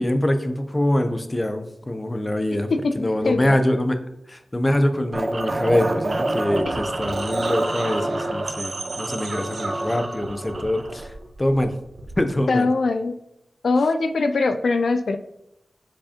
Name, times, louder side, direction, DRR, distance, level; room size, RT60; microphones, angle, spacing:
voice 1, 0.0-4.0 4.3-11.1 11.4-11.7 12.2-12.7, left 1 dB, 20° left, 7 dB, 0.5 m, -24 dB
voice 2, 2.7-3.6 12.5-13.1 13.6-15.2, left 3 dB, 80° left, 9 dB, 0.3 m, -22 dB
sound 1, 5.1-11.1, right 2 dB, 45° right, 0.5 m, -27 dB
sound 2, 6.7-12.3, right 2 dB, 80° right, 0.8 m, -35 dB
7.3 x 4.7 x 2.8 m, 0.83 s
wide cardioid pair, 110°, 0 cm